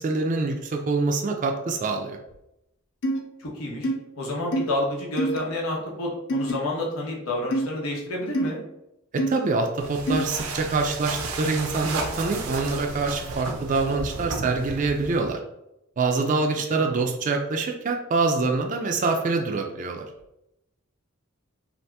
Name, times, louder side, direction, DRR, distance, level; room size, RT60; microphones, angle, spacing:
voice 1, 0.0-2.2 9.1-15.4 16.0-20.0, right 3 dB, 35° right, 3 dB, 0.3 m, -25 dB
sound 1, 3.0-3.2 3.8-3.9 4.5-4.6 5.2-5.4 6.3-6.5 7.5-7.7 8.3-8.5 9.2-9.3 10.1-10.2, right 1 dB, 55° left, 0.4 m, -24 dB
voice 2, 3.4-3.9 4.1-8.6 16.7-16.9, left 1 dB, 90° left, -2 dB, 1.0 m, -29 dB
sound 2, 9.8-15.3, right 3 dB, 90° right, 0.5 m, -33 dB
2.8 x 2.4 x 3.3 m, 0.86 s
head